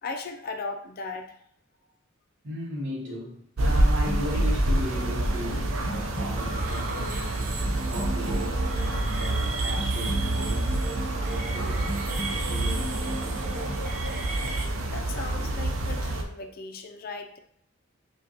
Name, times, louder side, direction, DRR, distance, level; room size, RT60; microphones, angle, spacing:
voice 1, 0.0-1.3 14.9-17.4, left 3 dB, 45° left, 0.4 m, -37 dB
voice 2, 2.4-7.5 7.9-13.3, equal, 60° right, 1.0 m, -36 dB
sound 1, 3.6-16.2, right 1 dB, 90° right, 0.6 m, -27 dB
sound 2, 4.0-13.8, right 1 dB, 25° left, 1.1 m, -40 dB
sound 3, 6.3-14.7, right 3 dB, 40° right, 0.4 m, -36 dB
5.0 x 2.2 x 2.8 m
head